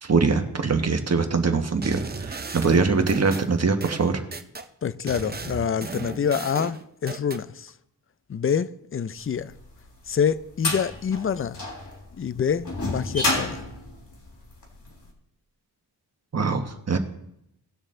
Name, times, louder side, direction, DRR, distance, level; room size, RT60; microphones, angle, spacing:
voice 1, 0.0-4.2 16.3-17.0, right 4 dB, 40° right, 1.3 m, -23 dB
sound 1, 1.8-4.7 5.1-7.4, right 4 dB, 25° right, 0.7 m, -35 dB
voice 2, 4.8-7.7 8.3-9.5 10.1-11.6 12.2-13.6, left 7 dB, 35° left, 0.5 m, -26 dB
sound 2, 9.6-14.9, left 2 dB, 55° left, 3.4 m, -30 dB
18.5 x 6.5 x 3.8 m
wide cardioid pair, 95°, 39 cm